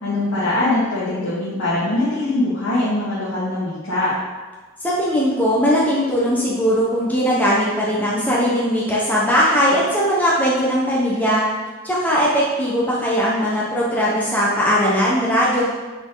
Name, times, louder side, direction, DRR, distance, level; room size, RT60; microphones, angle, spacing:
voice 1, 0.0-4.1, left 2 dB, 85° left, -10 dB, 2.2 m, -22 dB
voice 2, 4.8-11.4 11.8-15.6, equal, 10° left, -6 dB, 1.1 m, -19 dB
7.8 x 6.1 x 4.0 m, 1.3 s
head